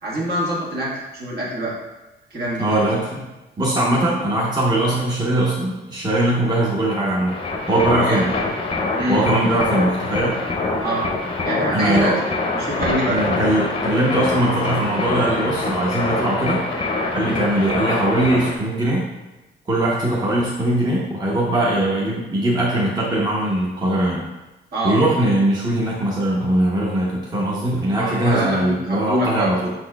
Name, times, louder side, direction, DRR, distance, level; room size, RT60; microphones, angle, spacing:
voice 1, 0.0-1.8 2.3-2.8 8.0-8.2 9.0-9.2 10.8-11.1 11.4-12.2 12.5-13.2 24.7-25.0 28.0-29.5, right 1 dB, 55° right, -5 dB, 1.6 m, -25 dB
voice 2, 2.6-3.2 3.6-7.4 7.7-8.3 9.1-10.4 11.7-12.2 13.1-16.6 17.1-19.1 19.7-24.2 24.8-29.7, right 1 dB, 20° right, -4 dB, 0.8 m, -20 dB
sound 1, 7.3-18.6, left 3 dB, 25° left, 0.7 m, -25 dB
5.5 x 4.1 x 2.3 m, 1.1 s
cardioid pair, 90°, 20 cm